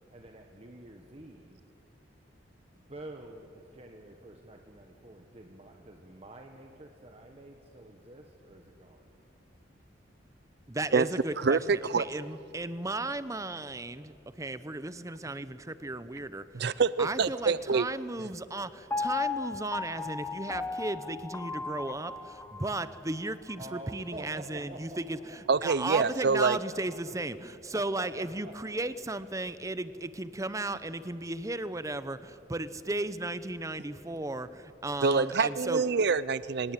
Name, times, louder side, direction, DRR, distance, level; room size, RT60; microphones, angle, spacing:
voice 1, 0.1-1.6 2.9-9.1 23.6-27.0 27.4-28.5, right 2 dB, 35° right, 3 dB, 1.5 m, -48 dB
voice 2, 10.7-11.6 12.0-16.4 17.0-35.8, right 2 dB, 15° right, 14 dB, 0.8 m, -35 dB
voice 3, 11.4-12.0 16.5-17.9 25.5-26.6 35.0-36.7, right 5 dB, 60° right, 17 dB, 0.5 m, -26 dB
Piano, 18.9-23.0 23.5-23.6, left 4 dB, 10° left, 1.0 m, -35 dB
25.0 x 19.0 x 9.0 m, 2.7 s
head